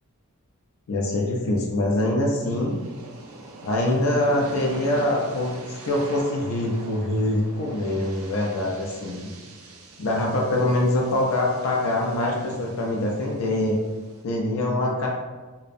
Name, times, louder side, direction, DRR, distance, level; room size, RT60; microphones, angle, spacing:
voice 1, 0.9-2.7 3.6-9.3 10.0-13.8 14.2-15.1, left 1 dB, 70° left, -2 dB, 0.4 m, -24 dB
sound 1, 2.4-14.2, right 2 dB, 75° right, 0.4 m, -43 dB
2.5 x 2.0 x 2.4 m, 1.3 s
head